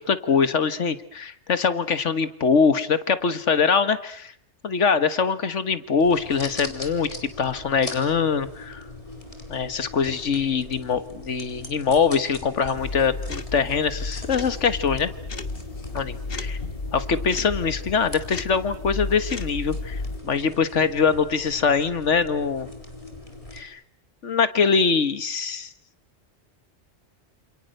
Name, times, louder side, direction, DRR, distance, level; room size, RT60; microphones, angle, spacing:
voice 1, 0.0-4.3 4.6-8.8 9.5-15.1 15.9-16.6 16.9-22.7 23.5-23.8 24.2-25.7, left 5 dB, 90° left, 12 dB, 1.8 m, -23 dB
sound 1, 6.0-23.6, left 2 dB, 30° left, 3.9 m, -40 dB
sound 2, 12.8-20.2, left 3 dB, 55° left, 1.6 m, -33 dB
28.0 x 28.0 x 6.6 m, 0.63 s
omnidirectional pair, 1.2 m